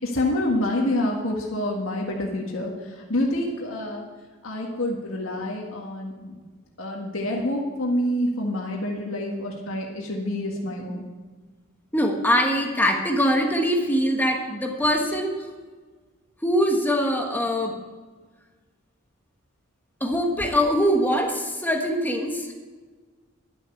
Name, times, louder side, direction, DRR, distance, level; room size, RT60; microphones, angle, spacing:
voice 1, 0.0-4.1 4.4-6.3 6.8-11.0, left 1 dB, 75° left, 0 dB, 1.7 m, -27 dB
voice 2, 11.9-15.3 16.4-17.8 20.0-22.5, equal, 10° left, 2 dB, 1.3 m, -23 dB
11.5 x 7.1 x 8.2 m, 1.4 s
head